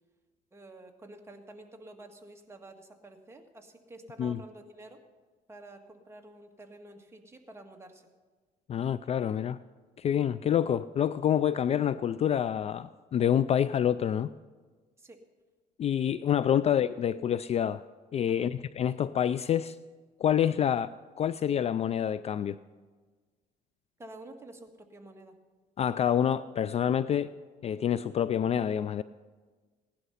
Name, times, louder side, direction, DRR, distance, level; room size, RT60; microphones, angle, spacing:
voice 1, 0.5-5.0 5.5-8.1 15.0-15.2 16.5-16.7 18.3-18.5 24.0-25.4, right 2 dB, 15° right, 3 dB, 1.7 m, -49 dB
voice 2, 8.7-9.6 10.0-14.3 15.8-17.8 18.1-19.8 20.2-22.6 25.8-27.3 27.6-29.0, left 9 dB, 40° left, 16 dB, 0.4 m, -27 dB
17.0 x 11.5 x 5.7 m, 1.4 s
cardioid pair, 110°, 17 cm